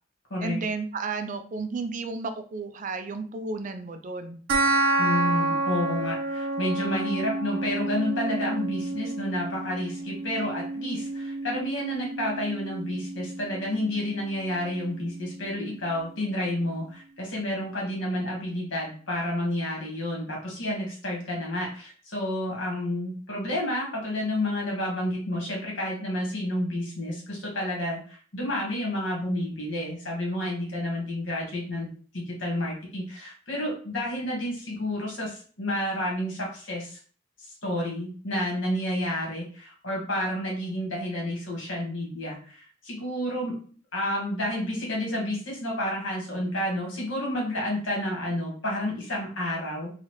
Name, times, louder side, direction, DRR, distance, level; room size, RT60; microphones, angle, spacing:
voice 1, 0.4-4.4, right 3 dB, 40° right, 8 dB, 0.4 m, -33 dB
sound 1, 4.5-15.5, right 2 dB, 90° right, 0.7 m, -30 dB
voice 2, 5.0-37.0 37.6-43.5 43.9-49.9, left 1 dB, 85° left, -2 dB, 1.7 m, -30 dB
4.1 x 2.4 x 3.2 m, 0.43 s
head